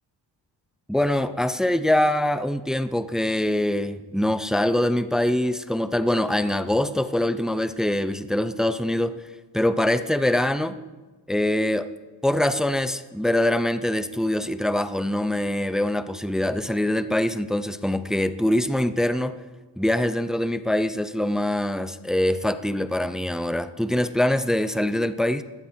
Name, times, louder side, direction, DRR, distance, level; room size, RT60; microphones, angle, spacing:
voice 1, 0.9-9.2 9.5-10.8 11.3-11.9 12.2-19.4 19.8-25.4, left 1 dB, ahead, 11 dB, 0.4 m, -24 dB
19.0 x 17.0 x 4.3 m, 1.3 s
wide cardioid pair, 165°, 45 cm